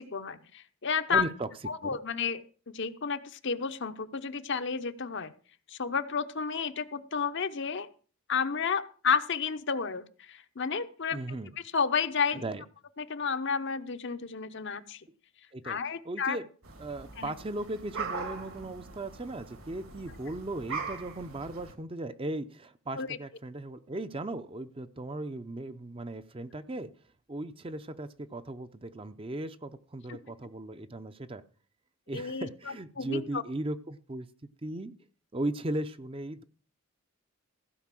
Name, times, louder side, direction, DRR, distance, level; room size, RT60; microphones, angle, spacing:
voice 1, 0.0-1.3 1.7-2.4 2.7-5.3 5.7-7.9 8.3-11.4 11.7-12.4 13.0-15.0 15.6-16.4 17.2-17.3 22.9-23.2 32.1-33.4, left 6 dB, 55° left, 10 dB, 0.8 m, -31 dB
voice 2, 1.1-1.5 1.8-2.0 11.1-11.5 12.3-12.6 15.5-15.8 16.0-16.5 16.8-26.9 27.3-31.4 32.1-34.3 34.6-34.9 35.3-36.4, right 2 dB, 25° right, 11 dB, 0.6 m, -37 dB
sound 1, 16.6-21.7, right 4 dB, 70° right, 2.3 m, -41 dB
15.5 x 5.2 x 7.5 m, 0.40 s
head